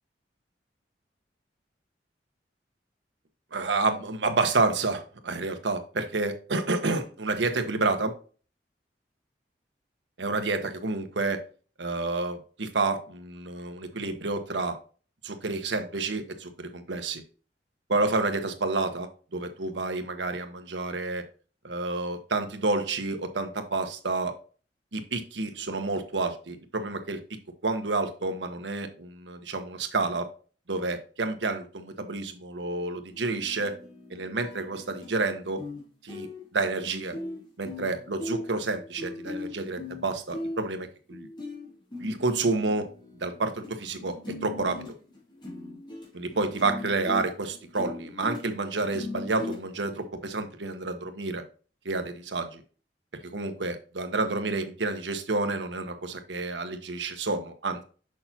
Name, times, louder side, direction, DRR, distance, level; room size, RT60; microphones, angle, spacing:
voice 1, 3.5-8.1 10.2-11.4 11.8-14.8 15.2-17.2 17.9-21.2 21.6-24.3 24.9-27.2 27.6-30.3 30.7-33.8 34.1-35.6 36.0-37.2 37.6-41.3 42.0-42.9 43.2-44.1 44.4-44.9 46.1-51.4 51.8-52.6 53.2-57.8, right 3 dB, 80° right, 7 dB, 1.0 m, -29 dB
sound 1, 33.1-35.2 35.6-35.8 36.1-43.7 44.0-50.1, left 2 dB, 25° left, 2.5 m, -39 dB
6.4 x 5.8 x 2.8 m, 0.38 s
head